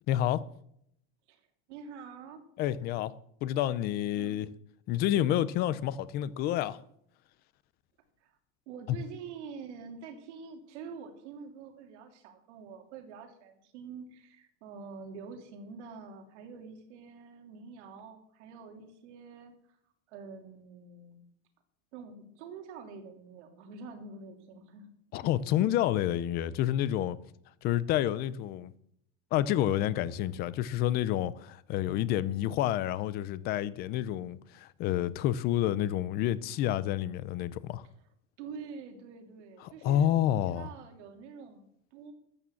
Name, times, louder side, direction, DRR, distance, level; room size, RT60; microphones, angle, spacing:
voice 1, 0.1-0.4 2.6-3.1 3.4-4.5 4.9-6.8 25.1-27.2 27.6-28.7 29.3-37.9 39.6-40.7, left 12 dB, 30° left, 0.4 m, -29 dB
voice 2, 1.7-2.4 4.1-4.4 8.2-8.3 8.7-19.5 20.1-21.2 21.9-24.9 25.2-25.3 37.8-37.9 38.4-42.1, right 5 dB, 75° right, 3.1 m, -46 dB
13.5 x 8.6 x 7.2 m
supercardioid pair, 170°, 35 cm